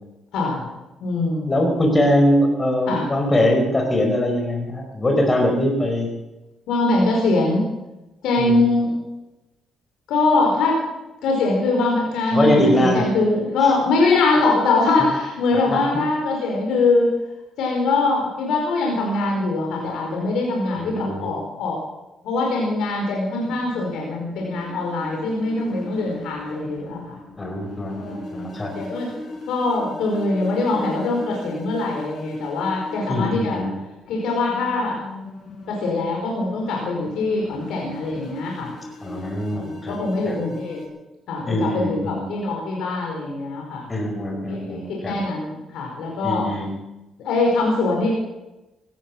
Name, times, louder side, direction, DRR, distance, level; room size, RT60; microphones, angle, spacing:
voice 1, 0.3-0.6 1.0-1.7 2.9-3.1 6.7-7.6 8.2-8.9 10.1-10.8 11.2-17.1 17.6-21.8 22.2-27.0 27.9-28.4 28.7-29.1 29.5-33.6 34.1-34.9 35.7-38.7 39.5-40.8 41.3-43.8 44.5-46.5 47.2-48.1, left 3 dB, 85° left, -1 dB, 4.8 m, -22 dB
voice 2, 1.5-6.1 8.4-8.6 12.3-13.1 13.6-13.7 15.5-15.8 20.8-21.3 27.4-28.8 33.1-33.7 39.0-40.4 41.5-42.2 43.9-45.2 46.2-46.7, left 1 dB, 25° left, 2 dB, 4.9 m, -22 dB
sound 1, 23.4-40.9, left 2 dB, 55° left, 5.1 m, -39 dB
16.5 x 14.5 x 6.1 m, 1.0 s
cardioid pair, 90°, 0 cm